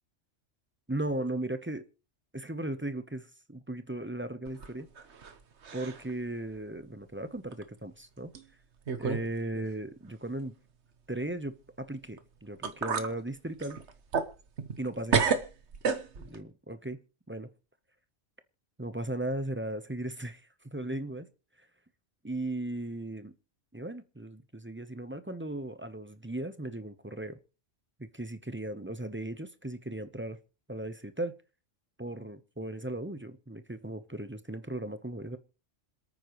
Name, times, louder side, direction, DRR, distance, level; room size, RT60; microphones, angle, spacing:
voice 1, 0.9-1.9 2.3-4.9 5.7-8.3 9.0-10.5 11.1-13.8 14.8-15.2 16.2-17.0 17.3-17.5 18.8-20.4 20.7-21.3 22.2-23.3 23.7-27.4 28.0-30.4 30.7-31.3 32.0-35.4, right 1 dB, 10° right, 0.8 m, -37 dB
sound 1, 4.5-5.4 5.6-6.1 6.5-6.6 7.5-7.6 8.3-8.4 8.9-9.3 9.5-9.6 12.2-12.3 12.6-13.1 13.6-14.8 15.1-16.4, right 5 dB, 65° right, 1.4 m, -31 dB
26.5 x 9.3 x 3.1 m
omnidirectional pair, 1.3 m